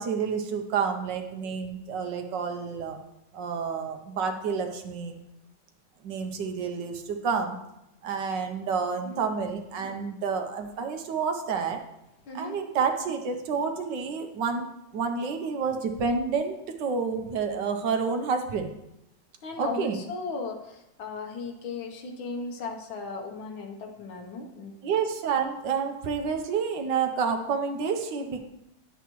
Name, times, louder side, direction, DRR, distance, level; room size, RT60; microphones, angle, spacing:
voice 1, 0.0-3.0 3.3-5.2 6.0-7.6 8.0-11.8 12.3-14.7 14.9-18.7 19.6-20.0 24.8-28.4, right 5 dB, 70° right, 5 dB, 1.4 m, -29 dB
voice 2, 12.3-12.6 19.4-24.8, left 4 dB, 85° left, 2 dB, 1.9 m, -36 dB
10.0 x 8.0 x 3.1 m, 0.86 s
omnidirectional pair, 2.1 m